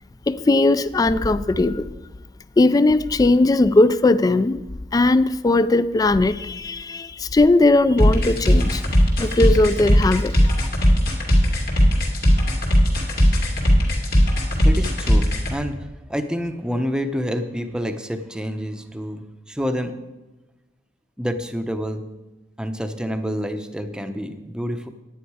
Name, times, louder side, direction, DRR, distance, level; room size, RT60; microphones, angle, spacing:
voice 1, 0.3-1.9 2.6-4.6 4.9-8.8 9.2-10.7, left 2 dB, 20° left, 0.3 m, -18 dB
sound 1, 8.0-15.5, equal, 55° left, 2.4 m, -17 dB
voice 2, 14.6-19.9 21.2-22.0 22.6-24.9, equal, 5° right, 0.7 m, -28 dB
10.0 x 9.8 x 4.8 m
head